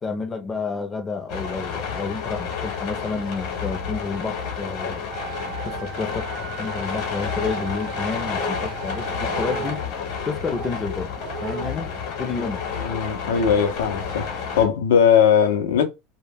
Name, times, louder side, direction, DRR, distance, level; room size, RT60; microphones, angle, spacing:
voice 1, 0.0-5.1 5.6-9.8 10.2-11.1 11.4-11.9 12.2-12.6, left 4 dB, 20° left, 0.4 m, -30 dB
sound 1, 1.3-14.7, left 6 dB, 60° left, 0.9 m, -30 dB
Wind instrument woodwind instrument, 5.1-9.9, right 13 dB, 85° right, 0.4 m, -38 dB
sound 2, 7.2-7.7 8.2-8.7 9.2-9.8 10.4-10.7 11.2-11.7, right 4 dB, 60° right, 0.7 m, -34 dB
voice 2, 12.8-14.3 14.5-15.8, left 7 dB, 90° left, 0.5 m, -19 dB
2.1 x 2.1 x 3.3 m
supercardioid pair, 135°, 0 cm